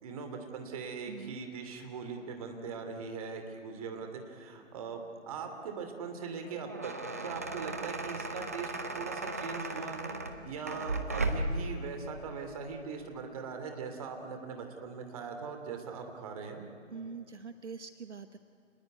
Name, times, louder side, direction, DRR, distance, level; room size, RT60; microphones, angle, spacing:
voice 1, 0.0-16.6, right 5 dB, 30° right, 5 dB, 2.8 m, -41 dB
voice 2, 1.1-1.4 16.9-18.4, right 5 dB, 65° right, 10 dB, 1.1 m, -43 dB
sound 1, 6.5-11.7, right 2 dB, 15° right, 0.6 m, -36 dB
28.5 x 20.0 x 9.6 m, 2.7 s
figure-of-eight pair, 145°, 38 cm